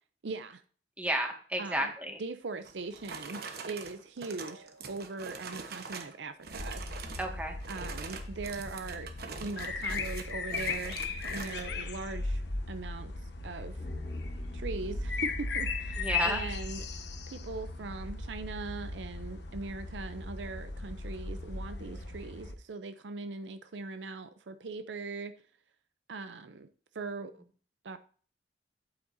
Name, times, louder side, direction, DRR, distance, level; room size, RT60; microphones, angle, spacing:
voice 1, 0.2-0.6 1.6-1.9 2.2-7.1 7.7-12.4 12.7-13.8 14.5-17.0 17.3-25.3 26.1-26.7 26.9-27.4 27.8-28.0, right 3 dB, 75° right, 10 dB, 0.6 m, -40 dB
voice 2, 1.0-2.2 7.2-7.5 11.3-11.6 16.0-16.4 21.7-21.9, right 1 dB, 10° right, 2 dB, 1.8 m, -33 dB
sound 1, 2.6-6.2 6.4-7.3 7.6-11.7, right 5 dB, 60° right, 1.1 m, -44 dB
sound 2, 6.5-22.5, left 3 dB, 65° left, 1.1 m, -37 dB
sound 3, 13.7-17.1 17.4-17.5, left 1 dB, 40° left, 1.0 m, -50 dB
8.7 x 8.6 x 2.7 m, 0.43 s
head